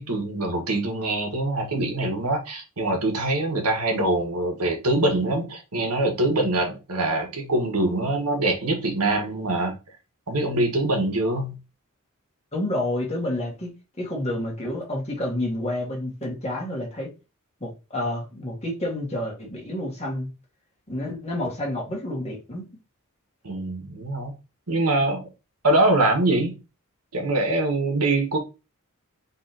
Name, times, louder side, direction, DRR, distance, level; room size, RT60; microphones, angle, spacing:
voice 1, 0.0-9.7 10.3-11.6 23.4-24.3 24.7-25.2 25.6-26.5 27.1-28.4, right 2 dB, 90° right, 1.6 m, -24 dB
voice 2, 12.5-17.1 17.6-20.3 20.9-22.7, left 1 dB, 30° left, 1.9 m, -29 dB
5.1 x 3.5 x 2.9 m
head